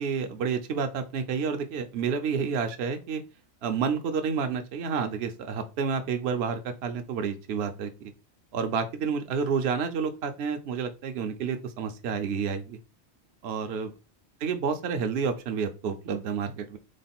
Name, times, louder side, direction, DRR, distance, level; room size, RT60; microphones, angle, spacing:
voice 1, 0.0-3.2 3.6-8.1 8.5-12.8 13.4-13.9 14.4-16.8, right 6 dB, 70° right, 7 dB, 0.9 m, -29 dB
3.7 x 3.2 x 4.2 m, 0.29 s
omnidirectional pair, 1.1 m